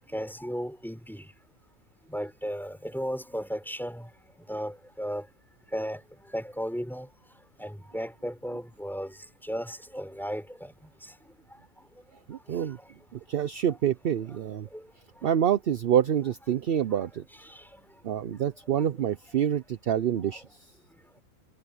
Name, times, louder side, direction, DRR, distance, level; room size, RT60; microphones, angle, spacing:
voice 1, 0.1-1.2 2.1-4.0 4.5-5.2 5.7-6.0 6.3-7.1 7.6-9.1 9.5-10.7, equal, ahead, 5.4 m, -34 dB
voice 2, 12.3-12.8 13.1-14.7 15.2-17.2 18.0-20.4, right 9 dB, 55° right, 0.7 m, -27 dB
omnidirectional pair, 1.5 m